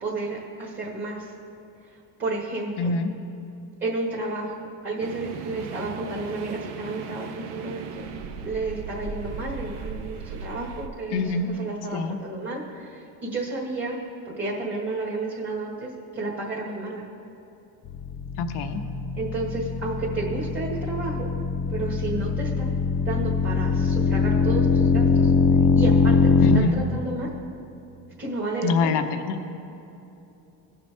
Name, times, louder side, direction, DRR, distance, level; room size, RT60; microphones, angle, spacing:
voice 1, 0.0-1.2 2.2-2.9 3.8-4.5 4.8-8.0 8.4-14.0 14.2-15.9 16.1-17.0 19.2-21.3 21.7-22.6 23.0-25.3 25.7-26.3 26.5-27.3 28.2-29.0, right 2 dB, 25° right, -4 dB, 1.6 m, -31 dB
voice 2, 2.8-3.1 11.1-11.5 11.9-12.2 18.4-18.8 26.4-26.8 28.6-29.4, left 4 dB, 85° left, 8 dB, 0.8 m, -25 dB
sound 1, 5.0-10.9, right 5 dB, 80° right, 0.8 m, -37 dB
sound 2, 17.9-26.6, left 4 dB, 45° left, 0.6 m, -22 dB
17.0 x 5.9 x 3.4 m, 2.9 s
cardioid pair, 100°, 39 cm